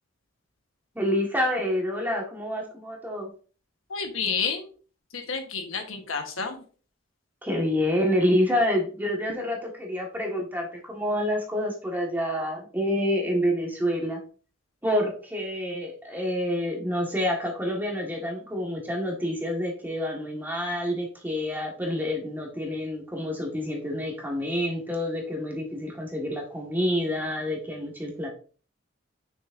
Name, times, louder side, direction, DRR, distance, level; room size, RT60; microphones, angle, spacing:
voice 1, 0.9-3.3 7.4-14.2 14.8-28.3, equal, 10° right, 0 dB, 1.5 m, -28 dB
voice 2, 3.9-4.7 5.1-6.6, left 5 dB, 80° left, 5 dB, 1.2 m, -30 dB
6.4 x 6.3 x 2.6 m, 0.39 s
head